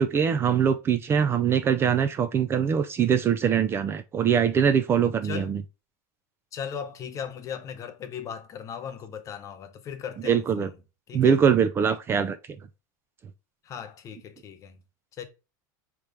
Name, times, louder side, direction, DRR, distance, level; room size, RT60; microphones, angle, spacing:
voice 1, 0.0-5.6 10.2-10.7 11.1-12.4, right 7 dB, 25° right, 0.3 m, -23 dB
voice 2, 6.5-10.7 11.1-11.3 13.6-14.8 15.2-15.3, left 8 dB, 30° left, 0.8 m, -37 dB
5.0 x 3.0 x 3.3 m
supercardioid pair, 145°, 10 cm